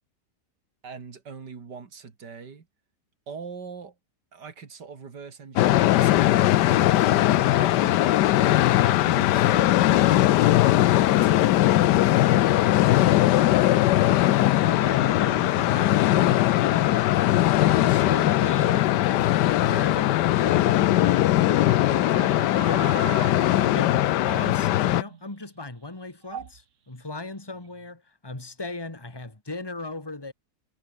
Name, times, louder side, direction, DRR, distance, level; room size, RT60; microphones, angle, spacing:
voice 1, 0.8-2.7 3.3-3.9 4.3-8.3 8.8-13.4 17.6-17.9, right 5 dB, 85° right, 3.0 m, -43 dB
sound 1, 5.6-25.0, left 14 dB, 85° left, 1.3 m, -20 dB
voice 2, 14.6-17.2 17.6-19.3 19.6-20.1 23.5-30.3, left 2 dB, 15° left, 2.6 m, -37 dB
sound 2, 21.5-25.4 26.2-26.6 27.5-27.9, right 8 dB, 50° right, 1.3 m, -40 dB
omnidirectional pair, 1.8 m